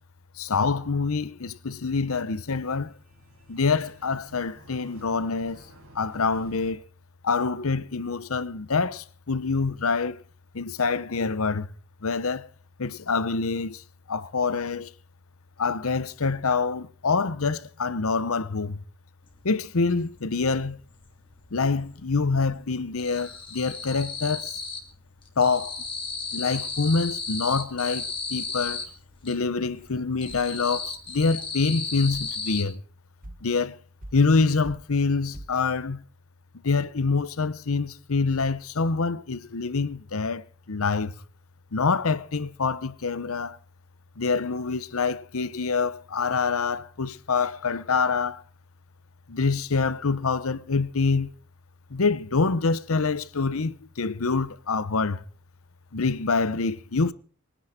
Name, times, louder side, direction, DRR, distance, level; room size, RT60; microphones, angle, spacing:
voice 1, 0.4-2.9 3.5-5.6 5.9-6.9 7.2-10.2 10.5-11.7 12.0-12.5 12.8-14.9 15.6-18.8 19.4-20.8 21.5-24.6 25.4-25.9 26.3-28.8 29.2-32.8 33.4-33.8 34.1-36.0 36.6-41.1 41.7-43.6 44.2-48.4 49.3-51.3 51.9-55.2 55.9-57.1, left 4 dB, 70° left, 0.8 m, -26 dB
sound 1, 2.6-6.7, right 1 dB, 75° right, 5.0 m, -52 dB
sound 2, 19.4-19.5 19.8-21.0 21.3-22.0 22.3-24.9 25.2-29.4 29.8-32.6, left 4 dB, 25° left, 3.4 m, -34 dB
sound 3, 28.7-28.9 29.6-30.0 30.3-30.5 31.1-31.3 31.8-31.9 32.1-32.7 33.2-33.5 34.0-34.4 34.6-35.0 35.3-35.6, right 1 dB, 40° right, 1.5 m, -45 dB
23.5 x 10.5 x 5.0 m
head